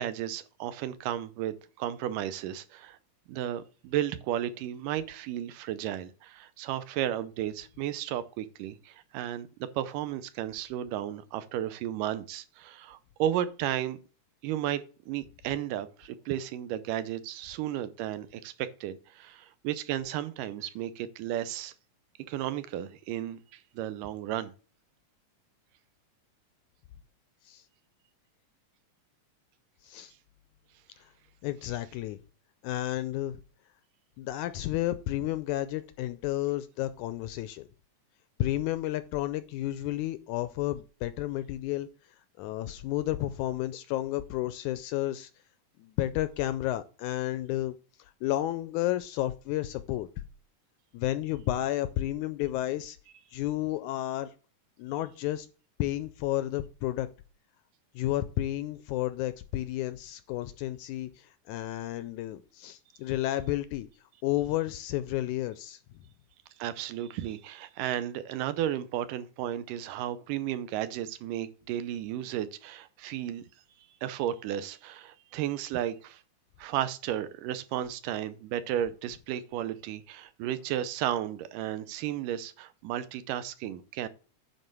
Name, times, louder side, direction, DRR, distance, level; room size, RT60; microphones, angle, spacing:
voice 1, 0.0-3.0 3.3-14.0 14.4-21.7 22.3-24.5 66.6-73.4 74.0-76.2 76.6-84.1, right 11 dB, 80° right, 2.3 m, -33 dB
voice 2, 31.4-32.2 32.6-33.4 34.2-37.7 38.4-41.9 42.4-45.3 45.8-47.8 48.2-50.1 50.9-53.0 53.3-54.3 54.8-55.5 55.8-57.1 58.0-63.9 64.2-65.8, left 14 dB, 80° left, 1.8 m, -31 dB
9.7 x 4.4 x 6.1 m
omnidirectional pair, 3.8 m